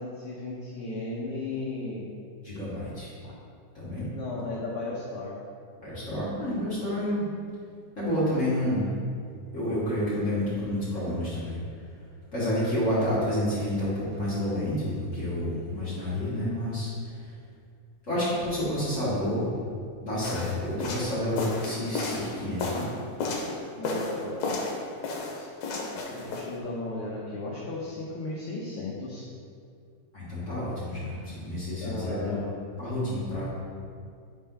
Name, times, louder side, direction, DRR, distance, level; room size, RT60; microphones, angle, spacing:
voice 1, 0.0-2.1 3.2-3.4 4.1-5.4 23.8-24.4 25.3-25.8 26.1-29.3 31.8-32.8, left 2 dB, 85° left, -5 dB, 1.2 m, -35 dB
voice 2, 2.4-3.1 3.7-4.0 5.8-7.3 8.0-8.9 9.5-11.6 12.3-17.3 18.1-19.6 20.0-22.9 30.1-32.4 32.8-33.5, left 1 dB, 40° left, -10 dB, 1.0 m, -29 dB
sound 1, 20.2-23.5 23.8-24.8 25.0-26.5, left 3 dB, 70° left, 2.1 m, -32 dB
8.5 x 4.3 x 3.8 m, 2.3 s
omnidirectional pair, 3.8 m